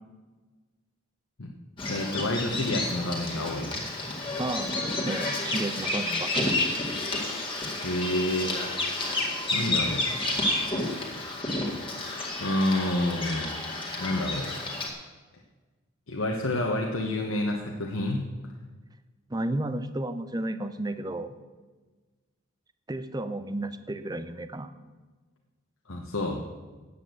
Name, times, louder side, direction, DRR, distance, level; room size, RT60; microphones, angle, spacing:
Bird vocalization bird call bird song, 1.8-14.9, left 2 dB, 25° left, 2.1 m, -30 dB
voice 1, 1.9-3.8 7.8-8.5 9.5-10.0 12.4-13.5 14.0-14.5 16.1-18.3 25.9-26.4, left 1 dB, 75° left, 0 dB, 1.2 m, -28 dB
voice 2, 4.4-4.7 5.1-6.6 19.3-21.3 22.9-24.7, right 1 dB, 20° right, 11 dB, 0.6 m, -32 dB
9.6 x 8.4 x 7.7 m, 1.3 s
head